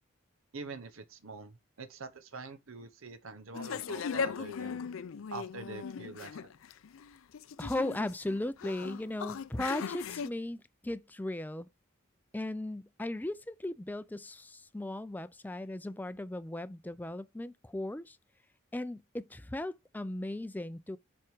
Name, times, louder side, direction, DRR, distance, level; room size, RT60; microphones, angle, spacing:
voice 1, 0.5-4.8 5.3-6.5, right 4 dB, 85° right, 0.9 m, -45 dB
sound 1, 3.5-10.3, left 6 dB, 80° left, 0.4 m, -38 dB
voice 2, 7.6-11.7 12.3-18.2 18.7-21.0, left 1 dB, 10° left, 0.4 m, -37 dB
7.5 x 3.6 x 4.6 m
head